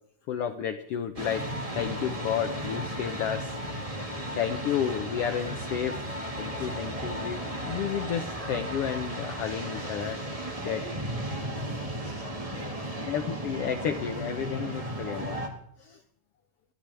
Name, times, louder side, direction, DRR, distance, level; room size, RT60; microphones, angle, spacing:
voice 1, 0.3-1.4 1.7-3.6 3.9-6.0 6.4-10.2 10.6-10.8 13.0-15.4 15.8-16.0, left 9 dB, 70° left, 6 dB, 1.4 m, -32 dB
sound 1, 1.2-15.5, right 1 dB, 20° right, 1.0 m, -35 dB
voice 2, 10.6-13.2, right 2 dB, 80° right, 0 dB, 5.3 m, -47 dB
29.5 x 13.0 x 3.5 m, 0.72 s
omnidirectional pair, 3.8 m